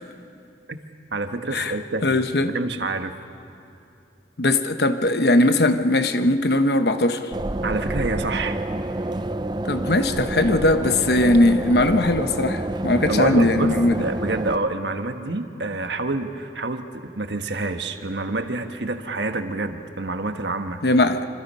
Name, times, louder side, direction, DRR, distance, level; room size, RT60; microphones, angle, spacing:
voice 1, 1.1-2.2 2.5-3.1 7.6-8.6 13.1-20.8, right 2 dB, 75° right, 7 dB, 1.4 m, -27 dB
voice 2, 2.0-2.5 4.4-7.3 9.7-14.1 20.8-21.3, left 2 dB, 60° left, 9 dB, 1.0 m, -19 dB
sound 1, 7.3-14.6, right 1 dB, 25° right, 0.5 m, -28 dB
26.5 x 26.0 x 5.6 m, 2.7 s
head